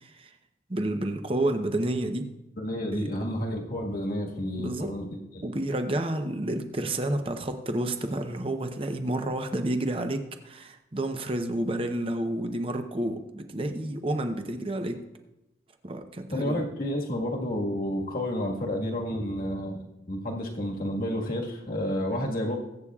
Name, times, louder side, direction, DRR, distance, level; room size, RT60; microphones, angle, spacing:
voice 1, 0.7-2.3 2.9-3.1 4.6-4.9 5.4-15.0 15.8-16.6, right 1 dB, 30° right, 6 dB, 0.8 m, -30 dB
voice 2, 2.6-5.4 16.3-22.6, equal, 50° left, 0 dB, 1.6 m, -30 dB
21.5 x 8.3 x 2.4 m, 0.94 s
head